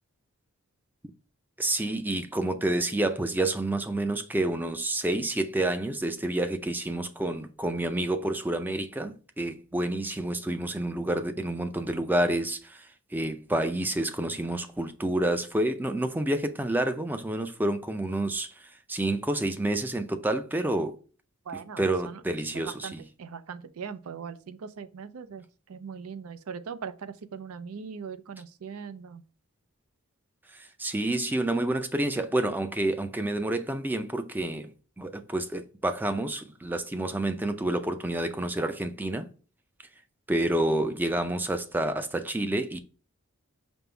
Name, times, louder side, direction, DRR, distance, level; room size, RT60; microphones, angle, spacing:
voice 1, 1.6-20.9 21.8-23.0 30.5-34.7 35.0-39.3 40.3-42.8, right 1 dB, 10° right, 0.4 m, -29 dB
voice 2, 21.4-29.2, right 6 dB, 75° right, 0.5 m, -40 dB
5.2 x 2.0 x 4.4 m
head